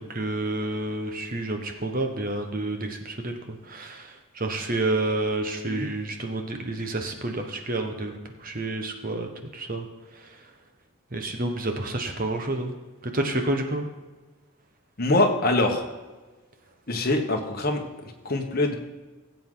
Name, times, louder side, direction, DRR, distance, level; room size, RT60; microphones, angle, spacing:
voice 1, 0.0-9.9 10.3-10.4 11.1-12.7 13.0-13.9, right 2 dB, 40° right, 5 dB, 1.2 m, -29 dB
voice 2, 15.0-15.8 16.9-18.7, left 2 dB, 45° left, 2 dB, 1.4 m, -24 dB
16.0 x 7.8 x 4.0 m, 1.3 s
head